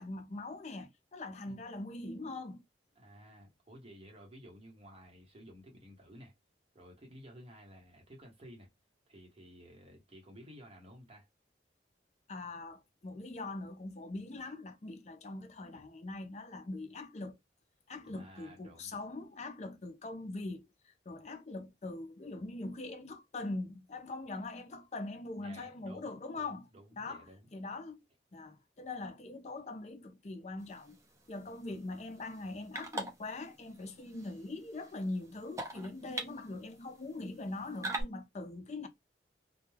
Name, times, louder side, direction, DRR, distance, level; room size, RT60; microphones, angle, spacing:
voice 1, 0.0-2.6 12.3-17.4 17.9-26.7 26.9-27.2 27.5-28.0 28.3-31.0 31.3-38.9, left 2 dB, 40° left, 0.5 m, -42 dB
voice 2, 3.0-6.3 6.7-8.7 9.1-11.3 18.1-19.0 25.4-27.5, equal, 35° right, 1.0 m, -54 dB
sound 1, 30.6-38.0, right 2 dB, 15° right, 0.5 m, -45 dB
2.2 x 2.2 x 3.2 m
head